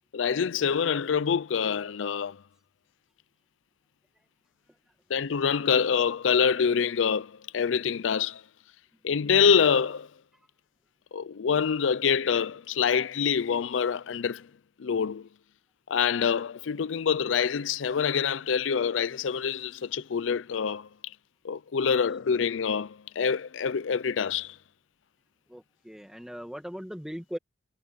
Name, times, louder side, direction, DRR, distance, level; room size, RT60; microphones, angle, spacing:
voice 1, 0.1-2.4 5.1-8.4 9.0-10.1 11.1-14.5 14.8-15.3 15.9-20.9 21.4-24.6, left 6 dB, 90° left, 0.5 m, -26 dB
voice 2, 25.5-27.4, equal, 5° right, 1.8 m, -39 dB
head